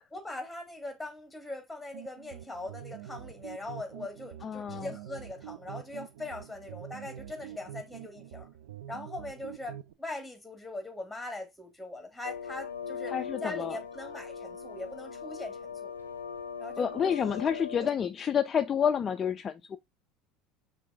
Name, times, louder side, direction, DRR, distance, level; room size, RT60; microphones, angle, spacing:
voice 1, 0.1-8.5 8.9-13.1 13.4-15.9 16.6-17.5 17.8-17.9, left 2 dB, 5° left, 1.6 m, -41 dB
sound 1, 1.9-9.9, right 11 dB, 70° right, 0.4 m, -45 dB
voice 2, 4.4-4.9 13.1-13.8 16.8-19.8, left 7 dB, 35° left, 0.3 m, -29 dB
sound 2, 12.2-17.9, left 6 dB, 90° left, 0.6 m, -40 dB
5.7 x 2.6 x 3.4 m
figure-of-eight pair, 70°, 0 cm